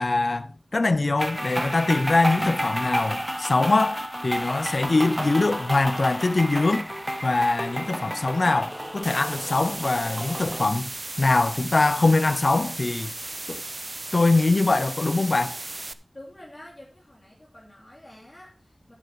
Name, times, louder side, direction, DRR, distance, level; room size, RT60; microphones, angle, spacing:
voice 1, 0.0-6.9 7.2-10.9 11.2-13.1 13.5-13.6 14.1-15.6, left 3 dB, 60° left, 0.7 m, -23 dB
sound 1, 1.2-10.6, equal, 10° right, 1.1 m, -31 dB
sound 2, 9.0-15.9, right 2 dB, 45° right, 0.6 m, -36 dB
voice 2, 16.1-18.9, left 1 dB, 30° left, 2.6 m, -47 dB
11.0 x 7.6 x 4.7 m
wide cardioid pair, 65°, 0 cm